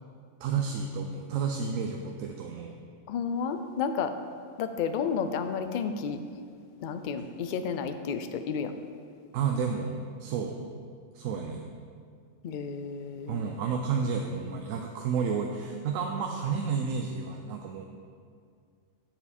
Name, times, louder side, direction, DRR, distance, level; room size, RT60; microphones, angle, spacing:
voice 1, 0.4-2.8 9.3-10.6 11.1-11.7 13.3-17.8, right 6 dB, 85° right, 3 dB, 1.0 m, -31 dB
voice 2, 3.1-4.1 4.6-6.2 6.8-8.7 12.4-13.5, left 6 dB, 70° left, 8 dB, 0.4 m, -31 dB
7.6 x 7.0 x 4.2 m, 2.2 s
omnidirectional pair, 1.3 m